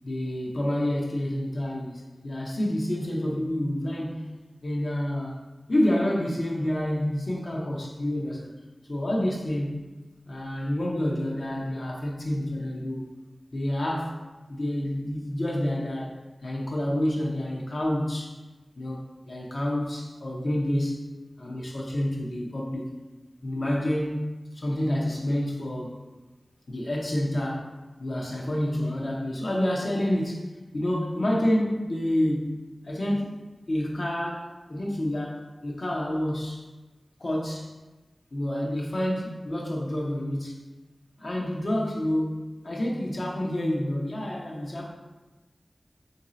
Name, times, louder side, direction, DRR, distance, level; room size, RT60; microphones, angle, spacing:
voice 1, 0.0-4.3 4.6-5.4 5.7-8.5 8.9-9.8 10.3-13.1 13.5-14.2 14.5-16.1 16.4-18.3 18.8-21.0 21.4-22.9 23.4-26.0 26.7-27.7 28.0-30.4 30.7-32.6 32.8-33.4 33.7-36.6 37.2-37.7 38.3-40.6 41.2-44.9, left 1 dB, 65° left, -2 dB, 0.6 m, -28 dB
3.0 x 2.7 x 3.9 m, 1.2 s
wide cardioid pair, 65°, 0 cm